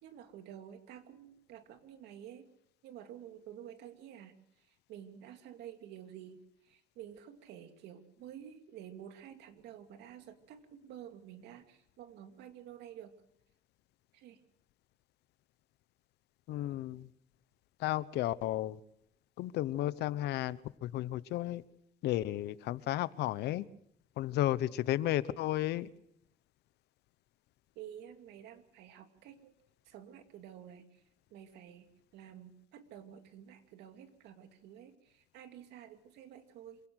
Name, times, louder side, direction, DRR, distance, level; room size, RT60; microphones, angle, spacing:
voice 1, 0.0-2.4 2.8-13.1 14.1-14.4 27.7-29.5 29.8-31.0 31.3-36.8, right 10 dB, 85° right, 7 dB, 2.7 m, -51 dB
voice 2, 16.5-17.1 17.8-18.8 19.4-21.6 22.0-23.6 24.2-25.9, left 14 dB, 80° left, 17 dB, 1.0 m, -33 dB
26.5 x 17.5 x 6.5 m, 0.73 s
cardioid pair, 110°, 17 cm